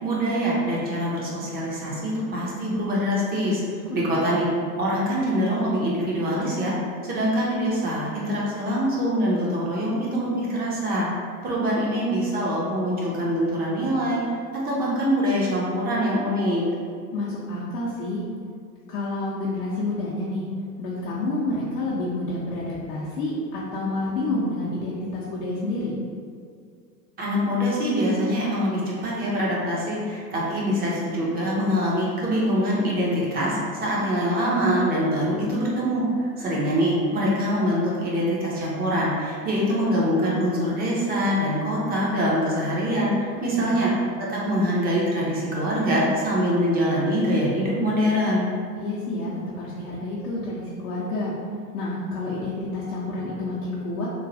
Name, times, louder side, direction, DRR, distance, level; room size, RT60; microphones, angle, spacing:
voice 1, 0.0-3.6 3.9-4.5 4.8-6.7 7.0-11.1 11.4-14.2 14.6-16.6 27.2-43.9 44.2-48.5, equal, 20° right, -5 dB, 0.6 m, -24 dB
voice 2, 17.1-18.2 18.9-20.5 20.8-25.9 43.4-43.8 48.8-51.3 51.7-54.1, left 2 dB, 60° left, -7 dB, 0.6 m, -29 dB
3.1 x 2.3 x 2.6 m, 2.2 s
figure-of-eight pair, 90°, 49 cm